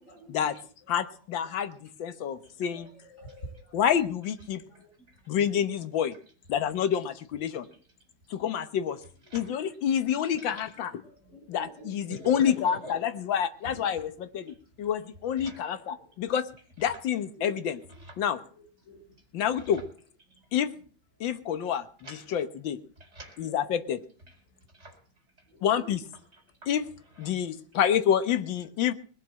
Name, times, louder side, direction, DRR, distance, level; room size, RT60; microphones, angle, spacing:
voice 1, 0.9-2.9 3.7-4.6 5.3-6.1 6.5-7.7 8.3-9.0 9.3-10.9 11.5-16.5 16.8-17.8 18.2-18.4 19.3-19.8 20.5-20.7 21.2-21.8 22.3-22.8 23.4-24.0 25.6-26.0 26.7-26.8 27.2-28.9, left 9 dB, 70° left, 11 dB, 1.8 m, -28 dB
voice 2, 2.3-2.8 3.1-3.8 4.7-4.8 11.3-11.9 17.4-17.5 18.5-19.0 23.5-23.6 25.5-26.0, right 1 dB, 40° left, 2 dB, 6.5 m, -47 dB
voice 3, 4.7-5.2 9.3-9.5 10.4-10.7 12.1-13.0 13.6-13.8 14.5-14.6 15.4-15.7 18.0-18.2 22.0-22.3 23.0-23.5 24.3-24.4 24.7-25.0 26.3-26.7 27.1-27.3, equal, 30° right, 3 dB, 4.9 m, -44 dB
20.5 x 7.0 x 7.5 m, 0.44 s
omnidirectional pair, 2.2 m